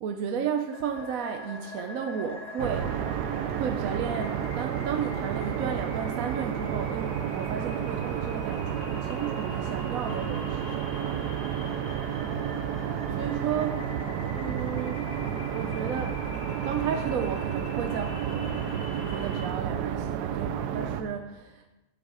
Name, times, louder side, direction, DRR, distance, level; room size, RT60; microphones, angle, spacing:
voice 1, 0.0-2.9 3.5-11.3 13.1-13.8 14.3-15.1 15.5-16.2 16.6-21.8, right 7 dB, 65° right, 5 dB, 1.0 m, -33 dB
sound 1, 0.7-19.5, left 1 dB, 80° left, 2.7 m, -43 dB
sound 2, 2.6-21.0, right 9 dB, 85° right, 1.2 m, -31 dB
10.5 x 6.4 x 4.8 m, 1.0 s
omnidirectional pair, 1.7 m